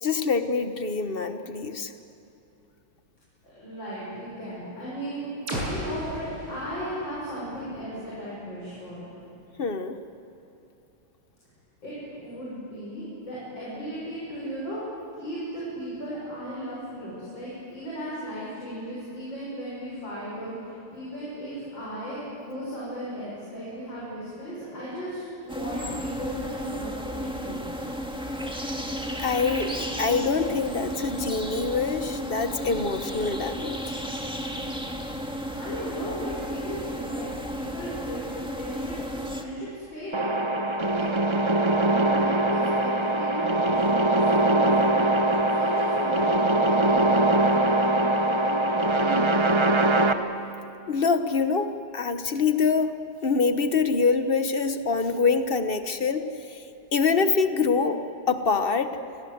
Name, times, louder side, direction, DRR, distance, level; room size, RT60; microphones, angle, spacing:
voice 1, 0.0-1.9 9.6-10.0 29.2-33.8 50.9-52.9 53.2-56.2 56.5-56.6 56.9-58.0 58.3-59.0, left 5 dB, 40° left, 9 dB, 0.8 m, -25 dB
voice 2, 3.4-9.0 11.8-14.8 15.2-27.8 35.6-37.3 37.5-38.3 38.5-40.5 40.9-41.3 42.0-48.6 48.9-49.7, equal, 60° left, -8 dB, 7.4 m, -36 dB
sound 1, 5.5-9.3, equal, 85° right, 8.5 m, -37 dB
sound 2, 25.5-39.4, equal, 5° right, 1.5 m, -33 dB
sound 3, 40.1-50.1, right 2 dB, 35° right, 0.4 m, -22 dB
29.5 x 21.5 x 7.9 m, 2.9 s
omnidirectional pair, 2.3 m